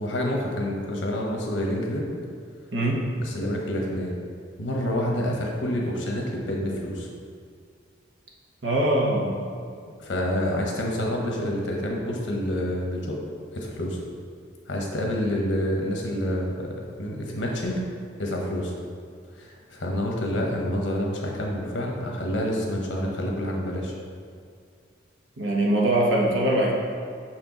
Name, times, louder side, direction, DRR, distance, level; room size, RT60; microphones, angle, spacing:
voice 1, 0.0-2.1 3.2-4.1 4.6-7.1 10.0-13.2 13.5-14.0 14.7-17.8 18.2-18.7 19.3-23.9, left 1 dB, 75° left, -1 dB, 1.0 m, -28 dB
voice 2, 2.7-3.1 8.6-9.4 25.4-26.7, right 1 dB, 75° right, -2 dB, 1.1 m, -22 dB
6.3 x 4.4 x 3.9 m, 2.2 s
head